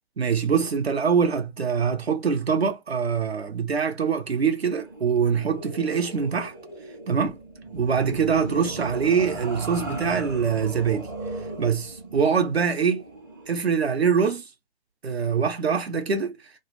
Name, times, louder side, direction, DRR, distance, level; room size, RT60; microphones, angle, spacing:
voice 1, 0.2-6.5 7.1-7.4 7.7-11.1 11.6-13.0 13.5-14.5 15.0-16.4, right 6 dB, 70° right, 0.7 m, -24 dB
sound 1, 4.7-13.7, right 2 dB, 20° right, 0.4 m, -37 dB
2.3 x 2.1 x 3.2 m
figure-of-eight pair, 140°, 33 cm